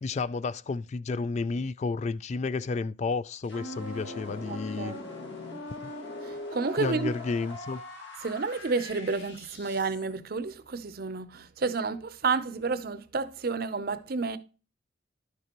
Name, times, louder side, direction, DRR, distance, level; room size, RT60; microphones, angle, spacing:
voice 1, 0.0-4.9 5.8-5.9 6.8-7.8, left 4 dB, 35° left, 0.3 m, -31 dB
sound 1, 3.4-10.1, left 2 dB, 75° left, 2.2 m, -41 dB
voice 2, 4.5-5.0 6.2-7.1 8.2-14.4, right 4 dB, 50° right, 0.6 m, -30 dB
11.0 x 6.8 x 2.9 m
head